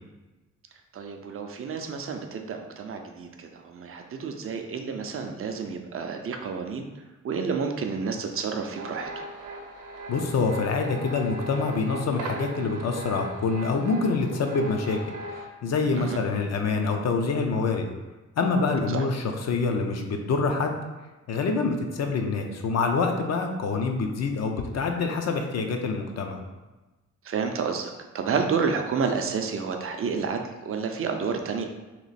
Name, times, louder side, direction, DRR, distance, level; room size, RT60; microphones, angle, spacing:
voice 1, 0.9-6.9 7.2-9.3 16.0-16.2 18.9-19.0 27.2-31.6, right 5 dB, 45° right, 4 dB, 0.4 m, -30 dB
sound 1, 8.7-15.5, right 1 dB, 80° right, 0.7 m, -38 dB
voice 2, 10.1-15.0 15.6-17.9 18.4-20.8 21.3-26.4, left 4 dB, 60° left, 4 dB, 0.5 m, -26 dB
3.0 x 3.0 x 4.1 m, 1.1 s
wide cardioid pair, 140°, 30 cm